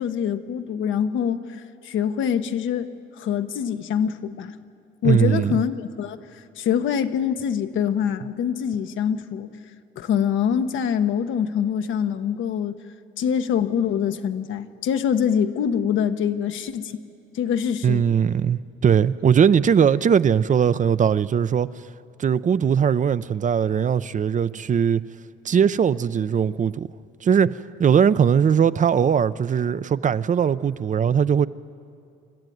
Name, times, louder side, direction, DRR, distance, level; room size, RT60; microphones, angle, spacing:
voice 1, 0.0-2.9 3.2-4.6 5.0-9.5 10.0-12.8 13.2-17.0 17.3-18.0, left 8 dB, 80° left, 1.0 m, -24 dB
voice 2, 5.0-5.5 17.8-21.7 22.2-25.0 25.4-26.9 27.2-31.5, right 7 dB, 40° right, 0.5 m, -20 dB
27.0 x 13.0 x 9.3 m
cardioid pair, 90°, 20 cm